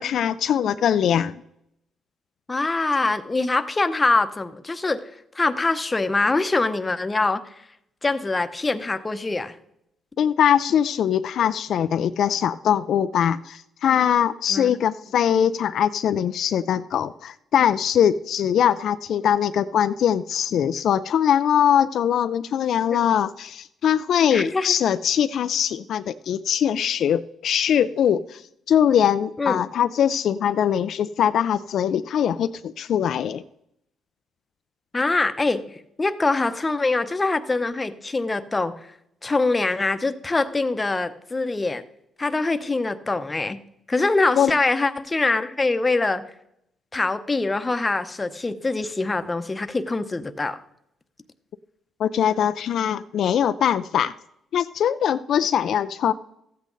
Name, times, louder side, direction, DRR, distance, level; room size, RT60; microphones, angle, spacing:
voice 1, 0.0-1.4 10.2-28.4 28.7-33.4 44.4-44.5 52.0-54.1 54.5-56.1, left 9 dB, 70° left, 11 dB, 0.4 m, -22 dB
voice 2, 2.5-5.0 5.3-7.5 8.0-9.6 14.5-14.8 24.3-24.7 29.4-29.6 34.9-35.6 36.0-38.7 39.2-41.8 42.2-43.6 43.9-46.2 46.9-50.6, left 3 dB, 20° left, 10 dB, 0.8 m, -24 dB
14.0 x 8.3 x 3.9 m, 0.78 s
cardioid pair, 90°, 0 cm